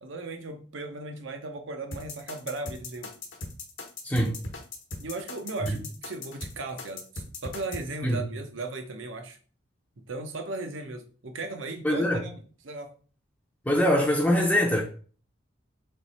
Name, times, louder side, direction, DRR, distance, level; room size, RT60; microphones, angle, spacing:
voice 1, 0.0-3.2 5.0-9.4 10.1-12.3 12.6-13.0, right 3 dB, 75° right, 0.7 m, -37 dB
sound 1, 1.9-7.8, left 3 dB, 80° left, 0.9 m, -38 dB
voice 2, 11.8-12.2 13.7-14.8, equal, 10° left, 0.5 m, -23 dB
3.4 x 3.0 x 4.1 m
head